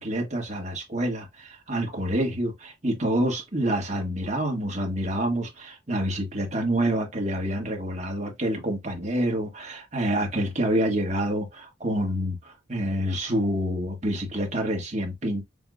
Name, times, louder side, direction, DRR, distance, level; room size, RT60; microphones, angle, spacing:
voice 1, 0.0-15.4, right 1 dB, 40° right, 1.6 m, -27 dB
6.9 x 2.4 x 2.7 m
head